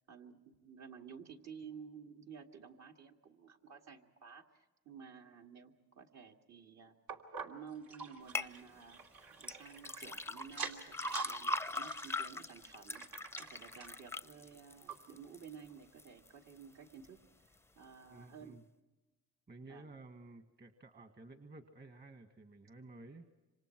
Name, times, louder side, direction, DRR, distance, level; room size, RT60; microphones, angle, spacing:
voice 1, 0.1-7.0 7.4-9.0 9.4-17.2 17.8-18.6 19.7-19.9, right 6 dB, 60° right, 2 dB, 2.3 m, -53 dB
sound 1, 7.1-10.1 10.5-11.4 11.7-14.0 14.5-14.6 14.9-15.0 15.6-15.7, right 6 dB, 75° right, 2.8 m, -46 dB
sound 2, 8.3-8.5 9.4-15.5 16.0-16.5 17.0-17.1, left 2 dB, 10° left, 0.7 m, -41 dB
voice 2, 18.1-18.6 19.5-23.3, right 2 dB, 35° right, 7 dB, 1.7 m, -54 dB
27.5 x 25.5 x 4.6 m, 1.1 s
cardioid pair, 90°, 30 cm